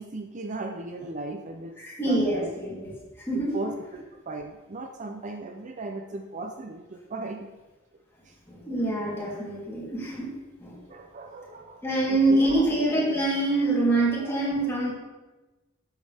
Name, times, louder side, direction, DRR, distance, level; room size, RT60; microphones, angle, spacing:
voice 1, 0.0-1.8 2.1-2.5 3.3-7.5 8.3-8.4 10.9-12.4 14.2-14.7, right 2 dB, 40° right, 4 dB, 0.6 m, -37 dB
voice 2, 1.8-2.9 3.3-3.5 8.5-10.3 10.6-10.8 11.8-14.9, right 2 dB, 15° left, -6 dB, 3.3 m, -25 dB
12.0 x 8.2 x 3.5 m, 1.2 s
head